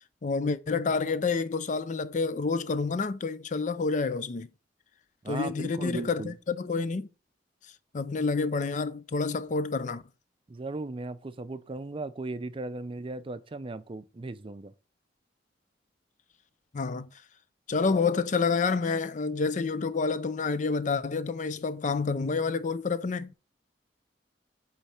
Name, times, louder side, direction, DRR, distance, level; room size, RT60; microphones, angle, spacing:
voice 1, 0.2-4.5 5.3-7.1 7.9-10.0 16.7-17.1 17.7-23.4, left 4 dB, 45° left, 0.5 m, -28 dB
voice 2, 5.2-6.3 10.5-14.7, right 2 dB, 30° right, 0.5 m, -37 dB
8.2 x 3.2 x 4.3 m
head